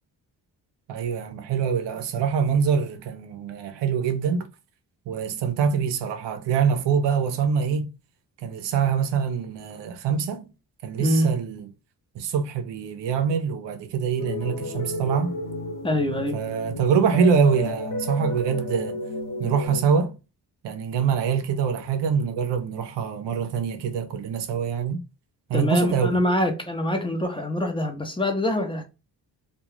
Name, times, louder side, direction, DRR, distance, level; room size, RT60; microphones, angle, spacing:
voice 1, 0.9-4.5 5.1-7.9 8.4-10.5 10.8-11.7 12.2-15.3 16.3-19.0 19.4-20.1 20.6-25.0 25.5-26.2, right 6 dB, 85° right, 0.6 m, -24 dB
voice 2, 11.0-11.3 15.8-16.4 25.5-28.8, left 1 dB, 15° left, 0.7 m, -24 dB
sound 1, 14.2-19.8, left 2 dB, 50° left, 1.0 m, -32 dB
2.3 x 2.3 x 3.0 m
cardioid pair, 65°, 41 cm